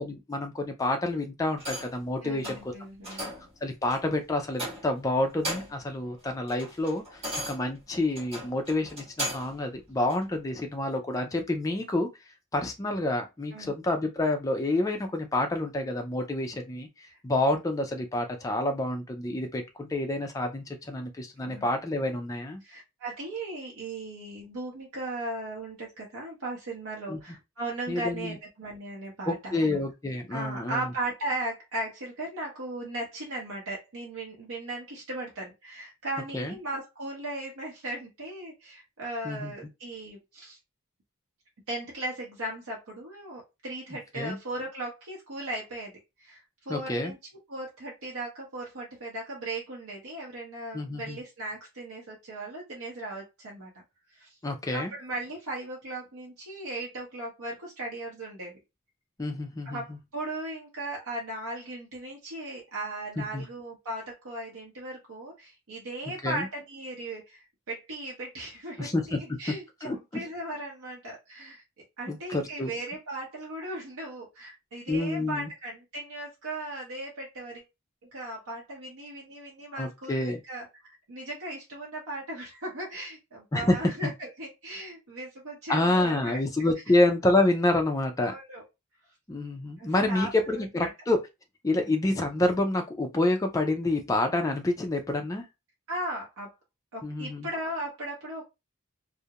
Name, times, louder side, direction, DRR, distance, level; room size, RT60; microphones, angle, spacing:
voice 1, 0.0-2.7 3.1-3.2 3.6-12.1 12.5-22.6 27.1-27.2 27.9-28.4 29.3-30.9 36.3-36.6 39.2-39.5 44.2-44.4 46.7-47.1 50.7-51.2 54.4-54.9 59.2-59.8 63.2-63.5 66.2-66.5 68.8-69.2 69.5-69.6 69.8-70.0 72.1-72.7 74.9-75.5 79.8-80.4 83.5-84.1 85.7-88.3 89.3-91.3 91.6-95.5 97.0-97.5, left 2 dB, 15° left, 0.3 m, -28 dB
sound 1, 1.6-2.0 2.4-2.7 3.0-3.5 3.9-4.1 4.5-5.0 5.3-5.9 6.2-9.6 10.1-10.2, equal, 25° right, 1.1 m, -37 dB
voice 2, 2.2-3.3 13.5-13.7 17.1-17.2 21.4-21.7 22.6-29.8 30.3-40.6 41.7-47.2 47.5-53.8 54.1-54.4 54.7-58.6 59.6-71.6 72.0-77.6 78.1-86.4 88.2-88.6 89.8-90.3 90.8-90.9 91.7-91.9 95.9-96.5 96.9-98.4, right 1 dB, 70° right, 0.7 m, -37 dB
2.4 x 2.0 x 2.8 m
head